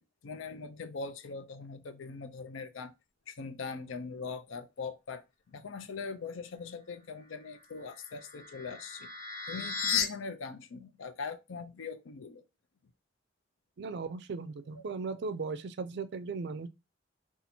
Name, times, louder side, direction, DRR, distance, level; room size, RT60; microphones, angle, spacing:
voice 1, 0.0-2.9 3.3-9.1 9.5-12.4 14.7-14.8, left 4 dB, 85° left, 0.5 m, -41 dB
sound 1, 7.8-10.0, left 6 dB, 45° left, 0.9 m, -34 dB
voice 2, 13.8-16.7, right 4 dB, 60° right, 0.4 m, -37 dB
2.7 x 2.4 x 4.2 m
head